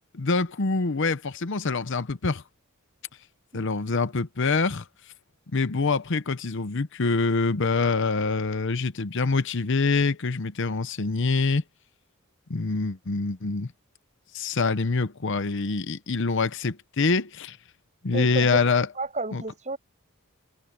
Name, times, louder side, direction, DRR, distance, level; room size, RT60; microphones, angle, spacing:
voice 1, 0.1-2.4 3.5-4.8 5.5-11.6 12.5-13.7 14.3-17.6 18.0-18.9 19.3-19.4, left 4 dB, 55° left, 0.8 m, -25 dB
voice 2, 18.1-18.6 19.0-19.8, right 2 dB, 30° right, 7.1 m, -31 dB
head